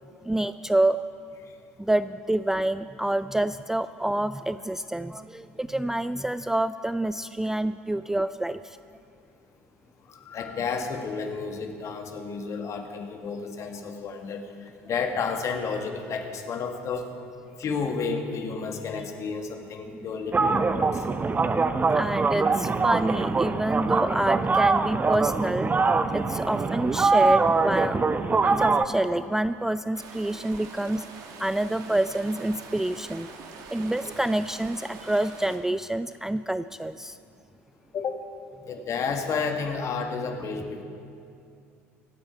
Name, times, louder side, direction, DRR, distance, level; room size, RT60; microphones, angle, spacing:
voice 1, 0.2-1.0 1.8-8.8 21.0-21.5 21.9-25.7 26.1-28.0 28.5-31.0 31.4-33.3 33.7-37.2 38.7-38.8, right 1 dB, 5° right, 13 dB, 0.3 m, -27 dB
voice 2, 10.3-14.4 14.9-17.1 17.6-21.0 37.9-38.1 38.7-40.8, left 5 dB, 45° left, 4 dB, 1.8 m, -31 dB
sound 1, 20.3-28.8, right 4 dB, 20° right, 0.7 m, -23 dB
sound 2, 29.9-35.6, right 5 dB, 55° right, 1.8 m, -44 dB
24.5 x 8.7 x 4.6 m, 2.5 s
hypercardioid pair, 65°, 7 cm